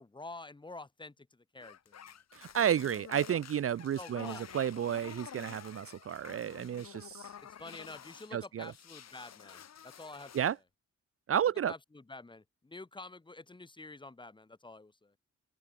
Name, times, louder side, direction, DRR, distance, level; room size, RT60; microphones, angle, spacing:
voice 1, 0.0-2.1 4.0-4.4 7.6-10.3 11.7-15.1, left 2 dB, 15° left, 4.9 m, -48 dB
sound 1, 1.6-8.3 8.6-10.6, left 8 dB, 60° left, 6.0 m, -50 dB
voice 2, 2.3-7.3 8.3-8.7 10.3-10.6 11.3-11.7, right 9 dB, 50° right, 0.8 m, -32 dB
open air
wide cardioid pair, 175°, 29 cm